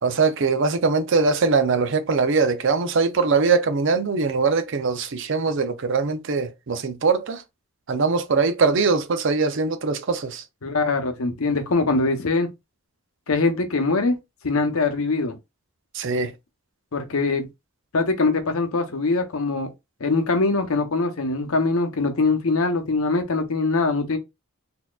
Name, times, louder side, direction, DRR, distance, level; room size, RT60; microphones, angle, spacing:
voice 1, 0.0-7.4 7.9-10.4 15.9-16.3, right 4 dB, 55° right, 0.5 m, -22 dB
voice 2, 10.6-12.5 13.3-14.2 14.4-15.3 16.9-17.5 17.9-19.7 20.0-24.2, left 3 dB, 75° left, 0.8 m, -22 dB
4.1 x 2.8 x 2.3 m
head